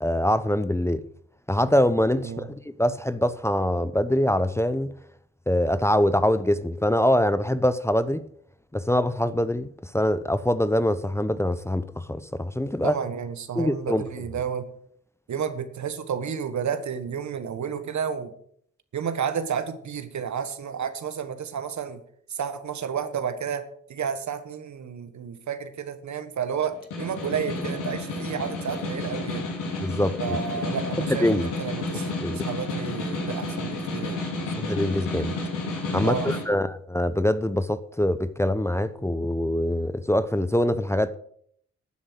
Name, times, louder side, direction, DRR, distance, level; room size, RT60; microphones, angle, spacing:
voice 1, 0.0-1.0 1.5-4.9 5.5-8.2 8.7-9.7 9.9-13.0 13.6-14.0 29.8-30.4 31.0-31.5 32.2-32.4 34.6-35.3 35.9-41.2, left 1 dB, 10° left, 0.8 m, -24 dB
voice 2, 12.8-14.7 15.3-18.3 18.9-22.0 22.3-29.5 30.2-34.2 36.0-36.3, right 7 dB, 65° right, 1.5 m, -31 dB
Snare drum, 26.7-36.5, left 2 dB, 80° left, 3.4 m, -31 dB
12.0 x 7.6 x 6.3 m
hypercardioid pair, 40°, 31 cm